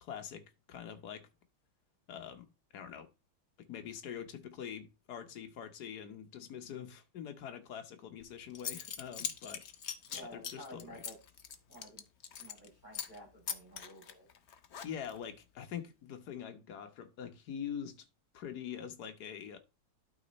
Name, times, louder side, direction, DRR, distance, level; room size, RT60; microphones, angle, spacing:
voice 1, 0.0-1.3 2.1-3.1 3.6-9.6 10.1-11.0 14.8-18.1 18.3-19.6, left 8 dB, 55° left, 1.4 m, -44 dB
Zipper (clothing) / Coin (dropping), 8.2-8.3 8.5-12.7 12.9-13.2 13.5-15.2, left 7 dB, 70° left, 0.6 m, -41 dB
voice 2, 10.1-11.2 11.7-12.0 12.4-14.3, equal, 20° right, 5.7 m, -52 dB
12.0 x 4.1 x 4.1 m
omnidirectional pair, 2.3 m